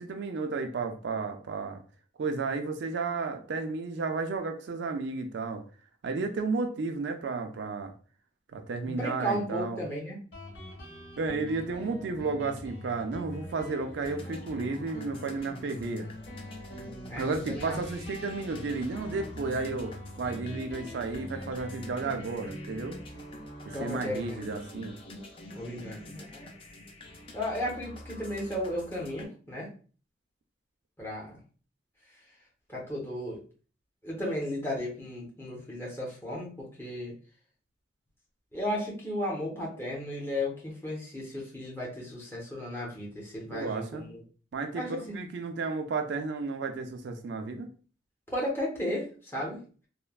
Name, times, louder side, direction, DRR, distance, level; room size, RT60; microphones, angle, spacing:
voice 1, 0.0-1.8 2.2-5.6 6.0-7.9 8.5-9.8 11.2-16.1 17.2-23.0 23.7-25.0 43.5-44.1 44.5-47.7, right 4 dB, 70° right, 6 dB, 0.4 m, -33 dB
voice 2, 8.8-10.2 17.1-17.8 23.7-24.3 25.5-26.5 27.3-29.7 31.0-31.4 32.7-33.4 34.0-37.1 38.5-44.2 44.7-45.2 48.3-49.6, left 1 dB, 15° left, -4 dB, 0.8 m, -34 dB
Guitar, 10.3-27.5, left 1 dB, 65° left, 0.9 m, -44 dB
sound 1, 14.0-29.3, left 2 dB, 30° left, 0.4 m, -49 dB
3.2 x 2.1 x 2.2 m, 0.40 s
head